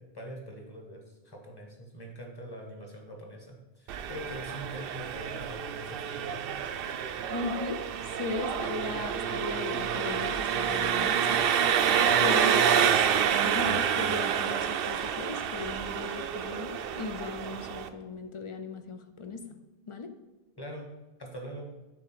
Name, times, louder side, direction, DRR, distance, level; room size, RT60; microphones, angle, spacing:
voice 1, 0.0-6.4 20.6-20.9 21.2-21.7, equal, 25° left, 0 dB, 1.4 m, -43 dB
Engine, 3.9-17.9, right 8 dB, 70° right, 0.7 m, -28 dB
voice 2, 7.3-7.8 8.1-11.4 12.2-19.6 19.9-20.1, left 3 dB, 40° left, 7 dB, 0.5 m, -37 dB
7.8 x 3.7 x 6.0 m, 1.1 s
omnidirectional pair, 1.0 m